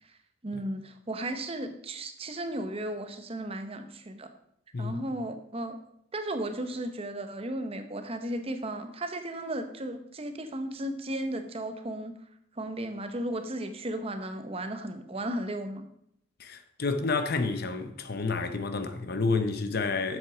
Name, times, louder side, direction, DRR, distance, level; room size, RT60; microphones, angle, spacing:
voice 1, 0.4-4.3 4.8-5.8 6.1-12.1 12.5-15.9, right 1 dB, 30° right, 0.7 m, -35 dB
voice 2, 4.7-5.1 16.4-20.2, left 4 dB, 50° left, 0.7 m, -30 dB
7.7 x 7.5 x 5.0 m
head